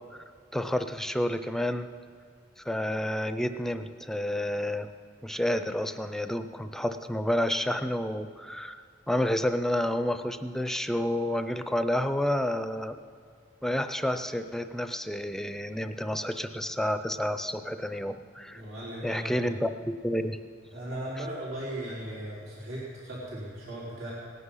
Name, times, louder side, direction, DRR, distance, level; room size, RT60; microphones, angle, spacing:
voice 1, 0.5-1.9 2.6-4.9 5.2-13.0 13.6-18.6 19.0-20.4, left 1 dB, ahead, 9 dB, 0.4 m, -30 dB
voice 2, 18.5-19.6 20.7-24.1, right 1 dB, 90° right, -7 dB, 4.0 m, -37 dB
18.5 x 9.9 x 5.6 m, 2.1 s
head